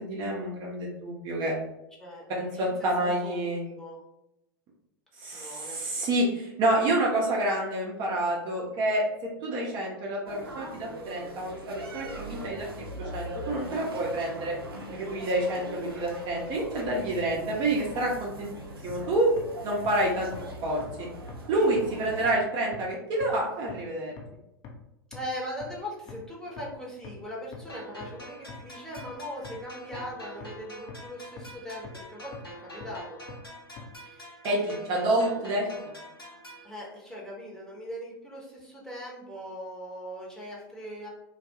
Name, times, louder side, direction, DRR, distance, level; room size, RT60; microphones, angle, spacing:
voice 1, 0.0-1.5 2.4-3.6 5.2-9.0 9.4-12.7 13.0-14.5 14.9-18.5 18.8-19.3 19.6-20.3 20.6-21.1 21.5-24.1 34.4-34.6 34.9-35.7, right 1 dB, 40° right, -3 dB, 0.7 m, -28 dB
voice 2, 2.0-2.7 3.0-4.0 5.3-5.9 21.5-21.8 25.1-33.2 34.0-35.0 36.6-41.1, equal, 5° left, -6 dB, 0.9 m, -40 dB
sound 1, 10.3-22.3, right 1 dB, 80° right, 0.5 m, -41 dB
sound 2, 18.9-19.0 19.4-19.5 19.8-19.9 20.3-20.4 20.8-20.9 21.3-21.4 21.8-21.9 22.2-22.3 22.7-22.8 23.2-23.3 23.7-23.8 24.2-24.3 24.6-24.7 25.1-25.2 25.6-25.7 26.1-26.2 26.6-26.7 27.0-27.1 27.5-27.6 28.0-28.1 28.5-28.6 29.0-29.1 29.4-29.5 29.9-30.0 30.4-30.5 30.9-31.0 31.4-31.5 31.8-31.9 32.3-32.4 32.8-32.9 33.3-33.4 33.8-33.9, left 8 dB, 35° left, 0.7 m, -43 dB
sound 3, 27.7-36.7, right 1 dB, 90° left, 0.7 m, -46 dB
2.3 x 2.2 x 2.8 m, 0.85 s
figure-of-eight pair, 90°, 12 cm